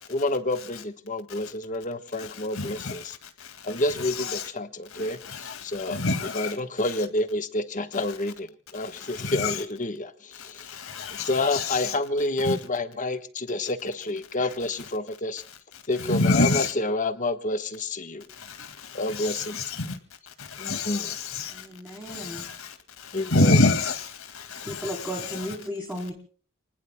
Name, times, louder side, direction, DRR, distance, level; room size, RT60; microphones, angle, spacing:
voice 1, 0.1-3.2 3.6-6.0 6.3-10.8 11.2-15.4 15.9-18.2 18.9-19.6 20.6-21.2 23.1-23.6, left 2 dB, 35° left, 1.2 m, -29 dB
voice 2, 2.6-3.0 3.8-4.5 5.0-5.6 5.9-6.5 9.1-9.6 10.7-12.0 12.4-12.5 16.0-16.7 19.1-19.9 20.5-21.5 22.1-22.6 23.2-24.1 24.3-25.6, left 2 dB, 80° left, 2.0 m, -27 dB
voice 3, 21.5-22.5 24.6-26.1, equal, 10° right, 3.6 m, -35 dB
30.0 x 19.5 x 2.2 m
head